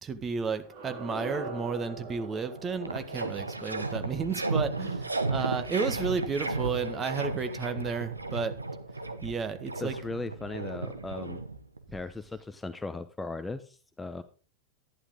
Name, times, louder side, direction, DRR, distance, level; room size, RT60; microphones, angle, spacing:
voice 1, 0.0-8.5 9.2-10.0, right 5 dB, 25° right, 10 dB, 1.7 m, -32 dB
sound 1, 0.6-5.5, right 2 dB, 55° right, 3.9 m, -43 dB
sound 2, 2.1-2.2 2.5-11.9, right 3 dB, 85° right, 1.2 m, -34 dB
voice 2, 9.8-11.4 11.9-14.2, left 3 dB, 10° left, 11 dB, 0.8 m, -37 dB
12.0 x 11.0 x 3.8 m, 0.38 s
figure-of-eight pair, 90°, 0 cm